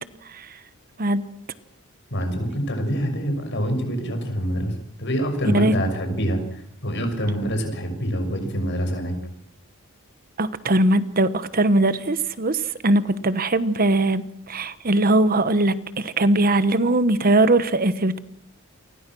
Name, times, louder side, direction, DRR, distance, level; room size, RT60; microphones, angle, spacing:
voice 1, 2.1-4.7 5.0-9.1, equal, 55° left, 6 dB, 6.7 m, -25 dB
voice 2, 10.4-18.2, right 2 dB, 40° right, 13 dB, 1.2 m, -20 dB
29.0 x 24.5 x 6.2 m, 0.70 s
head